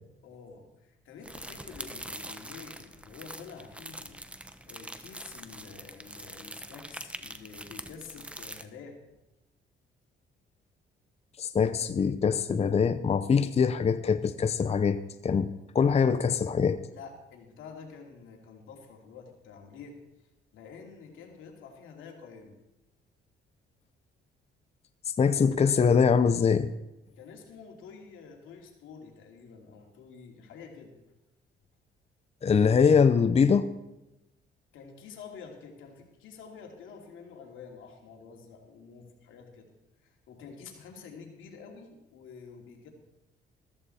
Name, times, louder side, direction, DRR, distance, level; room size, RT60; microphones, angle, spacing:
voice 1, 0.2-4.2 4.7-9.0 16.9-20.0 20.5-22.5 27.2-30.9 34.7-39.7 40.0-42.9, left 5 dB, 85° left, 2 dB, 2.6 m, -48 dB
sound 1, 1.2-8.6, right 1 dB, 5° right, 0.9 m, -44 dB
voice 2, 11.4-16.8 25.1-26.7 32.4-33.7, left 6 dB, 30° left, 12 dB, 0.6 m, -23 dB
14.0 x 14.0 x 4.2 m, 0.93 s
cardioid pair, 90°, 20 cm